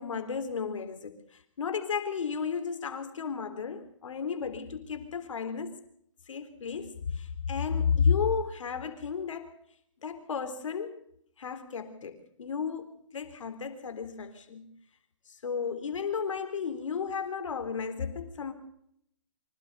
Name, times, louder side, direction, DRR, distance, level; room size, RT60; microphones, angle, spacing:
voice 1, 0.0-5.8 6.3-9.5 10.0-11.0 11.4-14.7 15.3-18.5, left 6 dB, 75° left, 3.6 m, -33 dB
25.0 x 16.0 x 6.7 m
hypercardioid pair, 160°, 16 cm